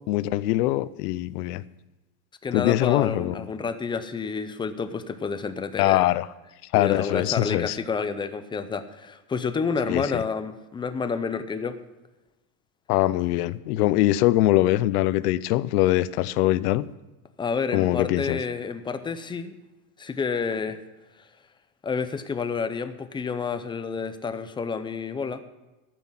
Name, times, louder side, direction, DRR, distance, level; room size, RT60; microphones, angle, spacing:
voice 1, 0.1-1.6 2.5-3.4 5.8-6.3 6.7-7.8 9.9-10.2 12.9-16.9 17.7-18.4, left 16 dB, 85° left, 18 dB, 0.7 m, -22 dB
voice 2, 2.4-6.0 6.7-11.8 17.4-19.6 20.0-20.8 21.8-25.4, left 5 dB, 10° left, 10 dB, 0.5 m, -29 dB
13.5 x 6.1 x 7.3 m, 1.1 s
supercardioid pair, 130°, 45 cm